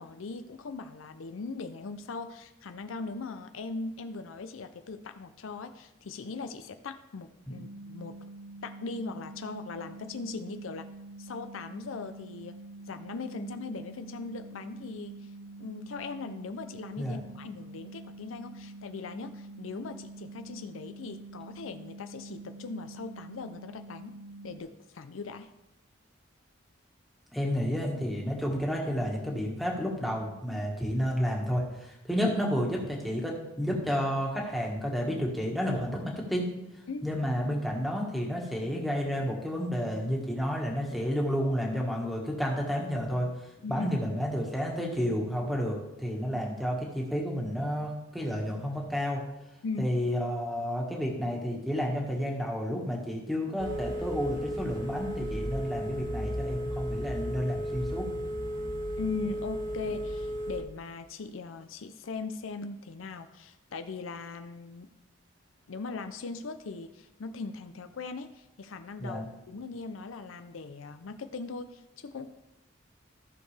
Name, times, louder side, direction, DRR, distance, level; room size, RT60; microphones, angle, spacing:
voice 1, 0.0-8.2 8.6-10.9 11.2-12.6 12.9-15.3 15.6-24.1 24.4-25.5 32.2-32.3 36.9-37.1 43.6-43.9 46.3-46.4 49.6-49.9 59.0-64.9 65.7-72.3, left 4 dB, 90° left, 9 dB, 0.5 m, -39 dB
sound 1, 7.5-24.6, right 2 dB, 55° right, 0.5 m, -46 dB
voice 2, 27.3-36.4 37.0-43.3 43.7-49.2 49.8-58.1 69.0-69.3, equal, ahead, -2 dB, 1.6 m, -31 dB
Telephone, 53.6-60.6, equal, 20° right, 1.3 m, -34 dB
14.5 x 6.4 x 3.3 m, 0.93 s
head